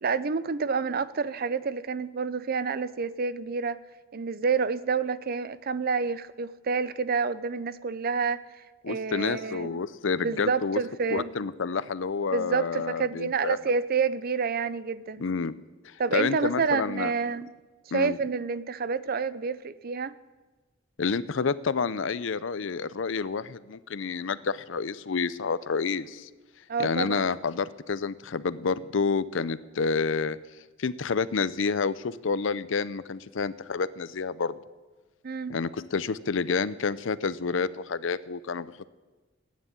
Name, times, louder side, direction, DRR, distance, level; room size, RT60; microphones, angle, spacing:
voice 1, 0.0-3.8 4.1-8.4 8.9-9.8 10.2-11.3 12.3-15.2 16.0-17.5 17.9-20.1 26.7-27.3 35.2-35.5, right 5 dB, 50° right, 16 dB, 0.6 m, -28 dB
voice 2, 8.8-10.8 11.1-13.6 15.2-15.6 15.8-17.1 17.9-18.2 21.0-26.3 26.8-30.4 30.8-34.6 35.5-38.9, left 5 dB, 70° left, 17 dB, 0.6 m, -29 dB
15.0 x 9.7 x 9.0 m, 1.2 s
head